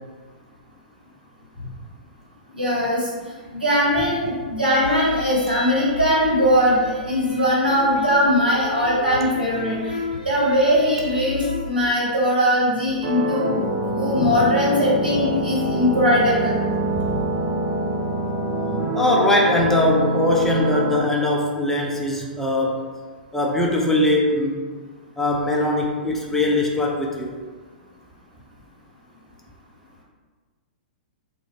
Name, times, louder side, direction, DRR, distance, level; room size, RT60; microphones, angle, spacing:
voice 1, 2.5-3.1 3.5-13.4 13.9-16.5, equal, 80° right, -7 dB, 1.2 m, -20 dB
sound 1, 4.8-11.6, left 2 dB, 85° left, 0.6 m, -33 dB
sound 2, 13.0-21.0, right 1 dB, 50° right, 0.5 m, -25 dB
voice 2, 18.9-22.8 23.3-24.6 25.2-27.4, left 1 dB, 5° left, -2 dB, 0.4 m, -21 dB
2.4 x 2.3 x 3.7 m, 1.4 s
figure-of-eight pair, 110°, 5 cm